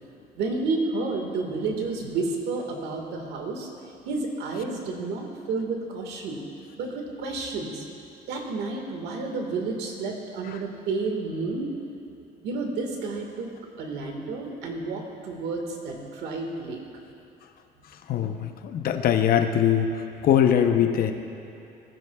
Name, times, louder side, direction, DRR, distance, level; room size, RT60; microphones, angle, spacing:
voice 1, 0.4-3.7 4.1-6.4 6.8-7.8 8.3-11.7 12.4-13.5 13.8-16.8, right 3 dB, 80° right, 2 dB, 1.8 m, -30 dB
voice 2, 18.1-19.9 20.2-21.1, left 9 dB, 60° left, 7 dB, 0.8 m, -21 dB
18.5 x 10.5 x 2.3 m, 2.9 s
cardioid pair, 110°, 17 cm